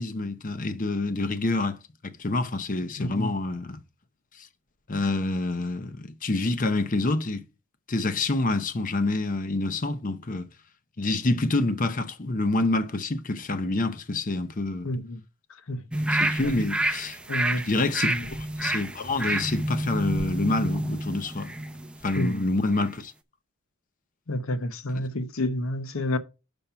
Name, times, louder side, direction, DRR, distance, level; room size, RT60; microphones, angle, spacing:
voice 1, 0.0-3.8 4.4-4.5 4.9-7.4 7.9-10.5 11.0-14.9 16.1-17.2 17.7-21.5 22.0-23.1 24.9-25.0, left 2 dB, 40° left, 0.7 m, -27 dB
voice 2, 3.0-3.3 14.8-15.2 15.7-15.8 16.4-16.5 17.3-17.7 18.0-18.3 22.2-22.5 24.3-26.2, left 1 dB, 70° left, 0.8 m, -29 dB
sound 1, 15.9-22.3 22.7-22.8, right 1 dB, 5° right, 0.5 m, -29 dB
5.7 x 5.4 x 5.6 m
head